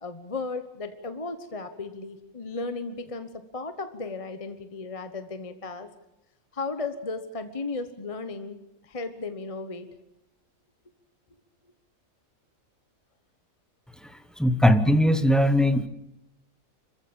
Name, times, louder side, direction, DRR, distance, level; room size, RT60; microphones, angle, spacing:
voice 1, 0.0-5.9 6.5-8.6 8.8-9.9, left 3 dB, 25° left, 9 dB, 1.2 m, -35 dB
voice 2, 14.4-15.9, equal, ahead, 10 dB, 1.0 m, -20 dB
26.0 x 15.5 x 8.8 m, 0.88 s
omnidirectional pair, 1.5 m